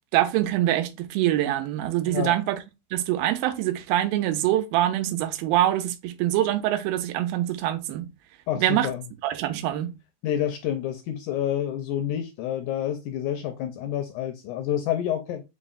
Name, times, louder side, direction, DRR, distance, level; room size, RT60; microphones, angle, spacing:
voice 1, 0.1-2.6 2.9-8.1 8.6-8.9 9.2-9.9, right 13 dB, 90° right, 2.4 m, -24 dB
voice 2, 2.1-2.4 8.5-9.1 10.2-15.4, left 10 dB, 80° left, 1.8 m, -28 dB
5.4 x 4.0 x 2.4 m
omnidirectional pair, 4.1 m